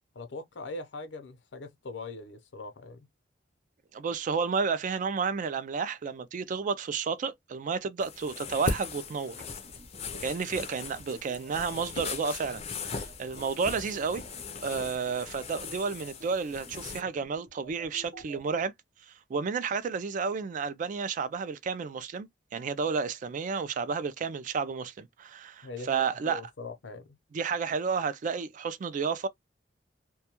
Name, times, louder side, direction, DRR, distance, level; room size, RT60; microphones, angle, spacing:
voice 1, 0.1-3.1 25.6-27.2, left 3 dB, 80° left, 0.6 m, -41 dB
voice 2, 3.9-9.4 10.2-14.2 14.6-18.7 19.1-26.4 27.3-29.3, right 5 dB, 45° right, 0.3 m, -31 dB
sound 1, 8.0-17.0, left 4 dB, 35° left, 0.4 m, -39 dB
sound 2, 9.6-18.6, right 2 dB, 65° right, 0.8 m, -51 dB
2.2 x 2.1 x 2.8 m
head